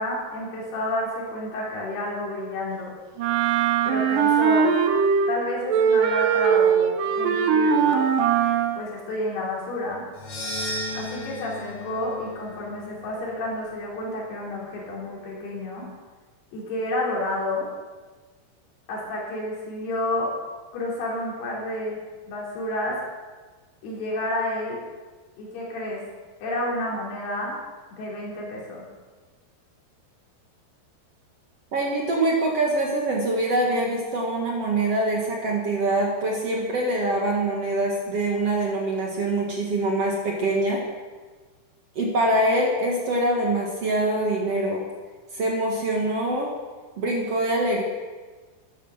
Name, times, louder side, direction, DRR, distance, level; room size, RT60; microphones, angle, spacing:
voice 1, 0.0-3.0 3.9-4.7 5.3-8.1 8.7-10.1 10.9-15.9 16.5-17.7 18.9-20.3 20.7-22.0 22.3-23.0 23.8-24.8 25.4-26.0 26.4-27.6 27.9-28.9, left 1 dB, 70° left, -4 dB, 5.5 m, -30 dB
Wind instrument woodwind instrument, 3.2-5.4 5.7-8.8, right 7 dB, 65° right, 2.3 m, -20 dB
sound 1, 10.1-14.5, left 1 dB, 40° left, 2.9 m, -36 dB
voice 2, 31.7-40.8 42.0-44.8 45.3-46.5 47.0-47.8, right 1 dB, 50° right, -1 dB, 2.0 m, -24 dB
13.5 x 10.5 x 6.5 m, 1.4 s
omnidirectional pair, 4.9 m